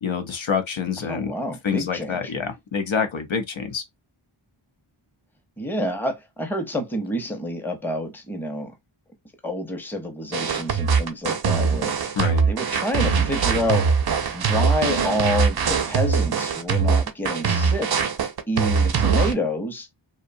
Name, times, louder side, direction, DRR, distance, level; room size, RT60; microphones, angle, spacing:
voice 1, 0.0-1.3 1.6-3.8 12.2-12.5, left 6 dB, 70° left, 0.7 m, -26 dB
voice 2, 1.1-2.3 5.6-8.7 9.4-12.0 12.5-13.9 14.3-18.0 18.5-19.9, left 1 dB, 5° left, 0.6 m, -28 dB
sound 1, 10.3-19.3, right 5 dB, 50° right, 0.5 m, -22 dB
2.6 x 2.2 x 2.5 m
wide cardioid pair, 45°, 49 cm